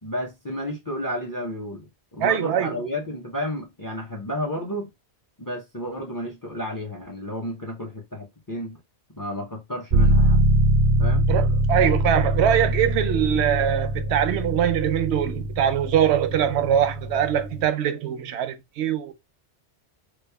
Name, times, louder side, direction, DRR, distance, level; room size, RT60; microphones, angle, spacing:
voice 1, 0.0-4.9 5.4-8.8 9.2-10.4 11.0-11.2, equal, 20° left, 0.7 m, -32 dB
voice 2, 2.2-2.8 11.3-19.1, right 9 dB, 85° right, 0.8 m, -22 dB
sound 1, 9.9-17.7, right 1 dB, 50° right, 0.4 m, -23 dB
3.2 x 2.4 x 3.3 m
omnidirectional pair, 1.1 m